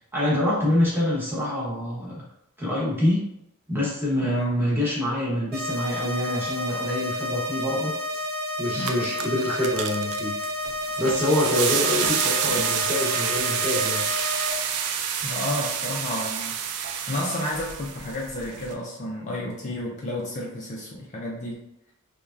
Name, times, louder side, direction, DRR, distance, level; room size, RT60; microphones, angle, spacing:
voice 1, 0.1-2.1 2.6-3.2 3.7-8.2 8.6-10.3 11.0-14.0, left 1 dB, 10° right, -6 dB, 0.9 m, -25 dB
voice 2, 4.2-4.6 8.7-9.1 15.2-21.6, left 1 dB, 35° left, -3 dB, 0.4 m, -31 dB
sound 1, 5.5-14.5, left 1 dB, 45° right, 0.8 m, -31 dB
sound 2, 8.2-8.3 8.7-18.7, right 8 dB, 85° right, 0.3 m, -28 dB
3.2 x 2.2 x 2.4 m, 0.81 s
head